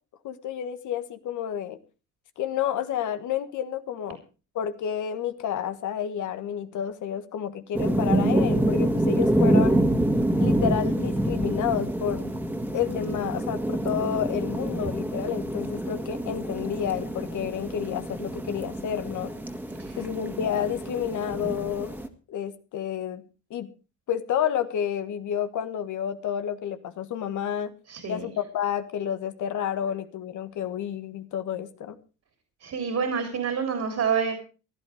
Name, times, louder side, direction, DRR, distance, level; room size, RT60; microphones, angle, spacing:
voice 1, 0.2-1.8 2.4-4.2 4.5-9.8 10.4-12.3 12.7-19.3 20.0-21.9 22.3-23.2 23.5-23.7 24.1-27.7 28.1-32.0, left 9 dB, 75° left, 10 dB, 1.6 m, -30 dB
sound 1, 7.7-22.1, right 1 dB, 5° right, 2.0 m, -26 dB
voice 2, 27.9-28.3 32.6-34.4, right 6 dB, 60° right, 5 dB, 3.5 m, -28 dB
16.0 x 11.0 x 5.0 m, 0.35 s
cardioid pair, 90°, 30 cm